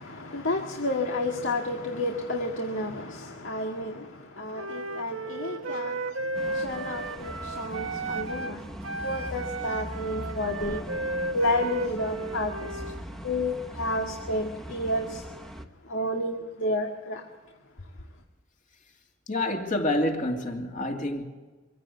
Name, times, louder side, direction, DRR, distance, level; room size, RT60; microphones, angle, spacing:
voice 1, 0.0-8.7 9.0-10.8 11.3-12.8 13.2-15.3 15.8-17.3 17.8-17.9, left 1 dB, 70° left, 2.0 m, -31 dB
Wind instrument woodwind instrument, 4.5-8.6 8.8-13.0, right 3 dB, 90° right, 1.0 m, -34 dB
voice 2, 5.7-6.0 19.3-21.2, left 1 dB, 40° left, 2.7 m, -28 dB
sound 1, 6.3-15.6, equal, ahead, 1.2 m, -40 dB
25.0 x 16.5 x 8.5 m
head